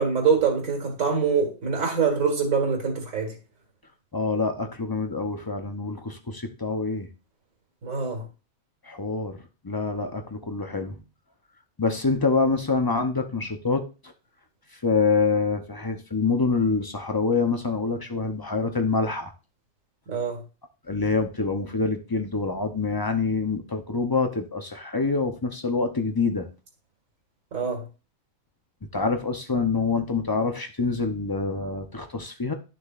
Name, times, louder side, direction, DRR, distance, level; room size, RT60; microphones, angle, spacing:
voice 1, 0.0-3.3 7.8-8.2 20.1-20.4 27.5-27.8, right 5 dB, 85° right, 2.3 m, -24 dB
voice 2, 4.1-7.1 8.8-9.4 9.6-11.0 11.8-14.1 14.8-19.3 20.9-26.5 28.9-32.5, left 4 dB, 30° left, 0.4 m, -26 dB
10.5 x 6.5 x 2.4 m
omnidirectional pair, 1.4 m